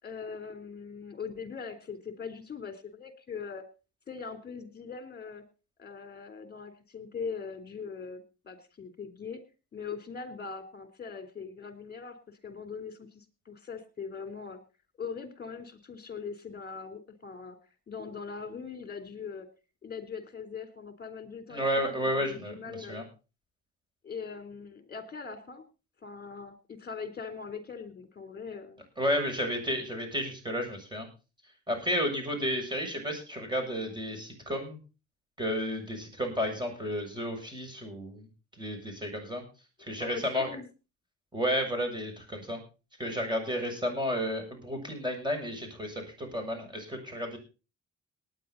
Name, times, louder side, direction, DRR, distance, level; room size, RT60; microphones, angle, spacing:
voice 1, 0.0-3.6 4.1-5.4 5.8-9.4 9.7-12.2 12.4-14.6 15.0-17.6 17.9-19.5 19.8-23.1 24.0-25.6 26.0-28.8 40.0-40.7, left 5 dB, 30° left, 9 dB, 3.6 m, -41 dB
voice 2, 21.5-23.0 29.0-31.1 31.7-34.8 35.4-38.3 38.6-39.4 39.8-40.5 41.3-42.6 43.0-47.4, equal, 15° right, 5 dB, 7.1 m, -32 dB
19.0 x 10.0 x 4.0 m, 0.32 s
cardioid pair, 90°, 30 cm